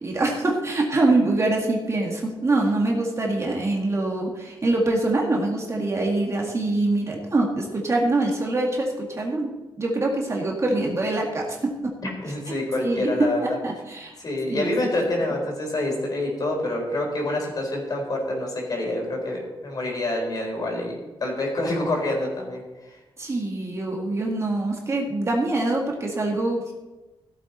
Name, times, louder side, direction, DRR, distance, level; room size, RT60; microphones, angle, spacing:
voice 1, 0.0-9.5 9.8-11.9 12.8-14.1 14.5-14.7 23.2-26.7, right 2 dB, 30° right, -1 dB, 1.9 m, -24 dB
voice 2, 12.2-13.4 14.2-23.0, left 1 dB, 45° left, 0 dB, 4.0 m, -27 dB
16.0 x 8.2 x 4.2 m, 1.1 s
wide cardioid pair, 130°, 9 cm